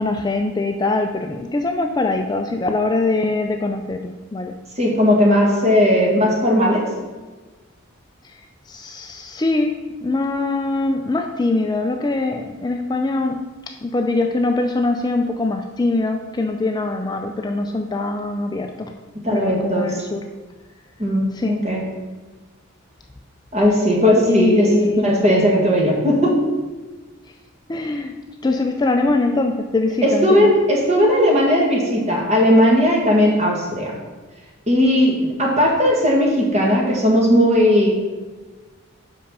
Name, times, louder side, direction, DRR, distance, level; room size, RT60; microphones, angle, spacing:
voice 1, 0.0-4.5 8.7-13.4 13.8-18.9 19.3-20.3 21.3-21.6 24.3-25.1 27.7-28.1 28.4-30.5, left 2 dB, 20° left, 4 dB, 0.4 m, -22 dB
voice 2, 4.8-6.8 19.2-20.0 21.0-21.8 23.5-26.3 30.0-34.0 34.7-37.9, equal, 35° right, -1 dB, 1.8 m, -17 dB
5.5 x 5.4 x 6.7 m, 1.3 s
head